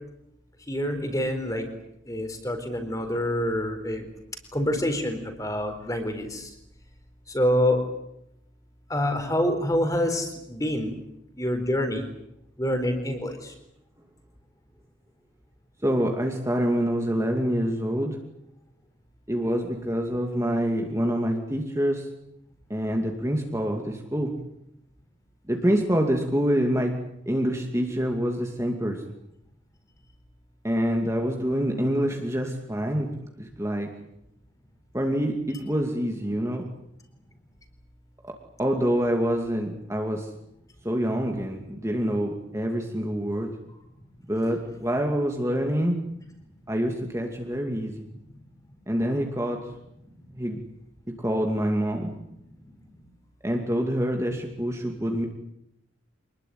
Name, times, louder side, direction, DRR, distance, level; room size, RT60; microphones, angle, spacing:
voice 1, 0.7-1.7 2.1-4.1 4.5-6.5 7.3-7.8 8.9-10.9 11.4-12.1 12.6-13.5 52.6-52.7, left 1 dB, 15° left, 6 dB, 4.2 m, -26 dB
voice 2, 15.8-18.2 19.3-22.1 22.7-24.3 25.5-26.9 27.3-29.0 30.6-33.1 33.4-33.9 34.9-36.6 38.6-40.3 40.8-43.5 44.3-46.0 46.7-48.1 48.9-49.6 50.3-50.6 51.2-52.1 53.4-55.3, equal, 15° right, 2 dB, 2.5 m, -26 dB
26.0 x 20.5 x 9.4 m, 0.80 s
head